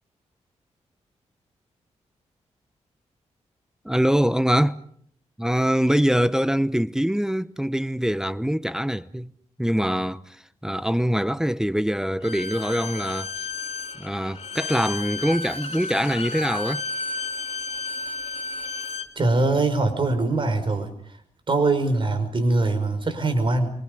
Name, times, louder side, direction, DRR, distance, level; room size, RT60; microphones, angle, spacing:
voice 1, 3.8-4.8 5.4-9.3 9.6-13.3 14.0-16.8, equal, 5° right, 0.9 m, -23 dB
Bowed string instrument, 12.2-19.1, left 4 dB, 60° left, 3.0 m, -32 dB
voice 2, 19.2-20.9 21.5-23.7, right 2 dB, 45° right, 5.5 m, -22 dB
28.0 x 25.0 x 5.4 m
cardioid pair, 70°, 12 cm